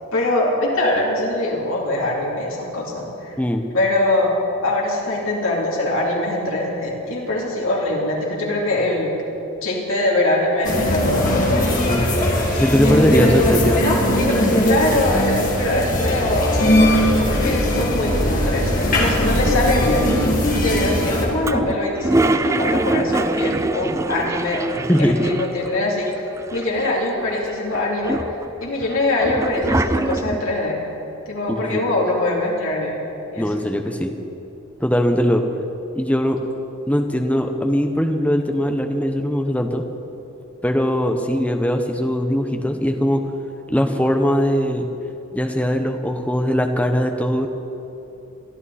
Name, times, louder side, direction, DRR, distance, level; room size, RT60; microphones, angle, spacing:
voice 1, 0.1-3.4 3.7-9.1 9.6-11.7 12.8-13.4 14.6-16.6 17.2-20.1 20.5-24.7 25.0-26.2 26.5-28.2 28.6-30.8 31.2-33.7, left 2 dB, 75° left, -4 dB, 3.2 m, -23 dB
voice 2, 3.4-3.7 11.9-12.1 12.6-13.8 24.9-25.2 31.5-31.8 33.4-34.2 34.8-35.4 35.9-36.4 36.9-39.8 40.6-43.2 43.7-44.9 45.3-47.5, equal, 5° left, 4 dB, 1.0 m, -20 dB
sound 1, 10.6-21.3, left 1 dB, 40° left, 2.4 m, -19 dB
Toilet flush, 21.4-25.8 26.1-26.2 26.4-27.2 27.7-30.5, right 2 dB, 15° right, 0.3 m, -24 dB
22.5 x 13.5 x 4.2 m, 2.9 s
head